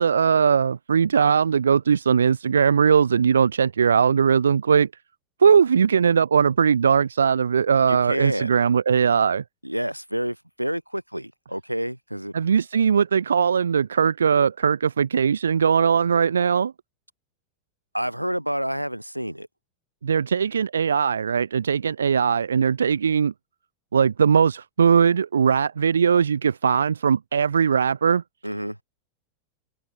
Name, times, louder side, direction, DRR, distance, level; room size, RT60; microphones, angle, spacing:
voice 1, 0.0-4.9 5.4-9.4 12.3-16.7 20.0-23.3 23.9-28.2, right 6 dB, 70° right, 1.7 m, -20 dB
voice 2, 7.9-8.5 9.6-12.3 17.9-19.5 28.4-28.8, equal, 90° right, 6.0 m, -28 dB
open air
figure-of-eight pair, 90°, 0 cm